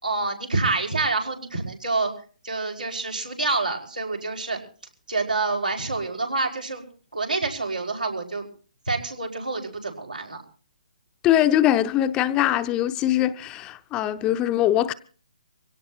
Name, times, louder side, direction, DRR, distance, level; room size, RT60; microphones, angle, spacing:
voice 1, 0.0-2.1 2.4-4.6 5.1-6.8 7.1-8.5 8.9-10.4, right 3 dB, 90° right, 5.0 m, -27 dB
voice 2, 11.2-14.9, left 12 dB, 15° left, 0.7 m, -22 dB
24.5 x 17.5 x 2.8 m
figure-of-eight pair, 145°, 4 cm